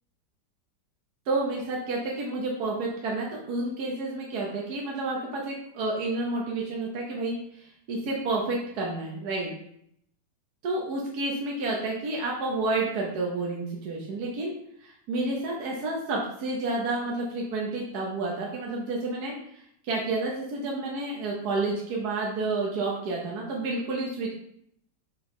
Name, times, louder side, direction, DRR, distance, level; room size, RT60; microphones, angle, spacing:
voice 1, 1.3-9.5 10.6-14.5 14.8-24.3, right 2 dB, 65° right, -2 dB, 1.5 m, -30 dB
5.4 x 5.1 x 3.8 m, 0.71 s
omnidirectional pair, 1.8 m